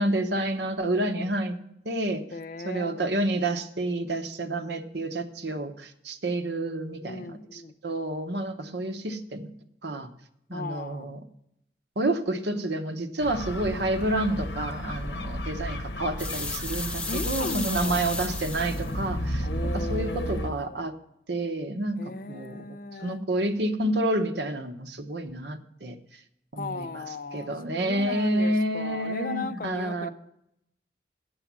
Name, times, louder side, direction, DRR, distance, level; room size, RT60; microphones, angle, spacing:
voice 1, 0.0-1.6 1.8-2.2 2.6-9.5 9.8-10.1 10.5-11.2 12.0-19.5 19.7-20.9 21.3-22.0 22.3-22.7 23.0-26.0 26.5-27.0 27.3-30.1, right 1 dB, 80° right, 0.9 m, -29 dB
voice 2, 2.1-3.0 7.0-7.7 10.5-11.1 17.1-18.3 19.4-20.8 22.0-23.2 26.6-30.1, left 3 dB, 50° left, 0.5 m, -37 dB
sound 1, 13.2-20.5, equal, 75° left, 0.9 m, -33 dB
sound 2, 16.2-18.9, left 2 dB, 5° left, 0.6 m, -34 dB
8.7 x 7.0 x 7.3 m
head